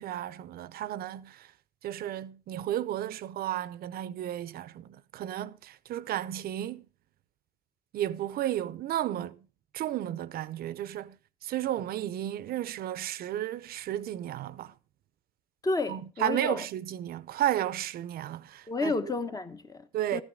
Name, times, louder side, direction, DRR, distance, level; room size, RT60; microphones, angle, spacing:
voice 1, 0.0-1.5 1.8-6.9 7.9-9.4 9.7-11.2 11.4-14.7 15.9-18.9 19.9-20.2, right 12 dB, 65° right, 0.7 m, -33 dB
voice 2, 15.6-16.6 18.7-20.2, left 3 dB, 20° left, 1.1 m, -31 dB
13.5 x 9.9 x 3.7 m
cardioid pair, 110°, 17 cm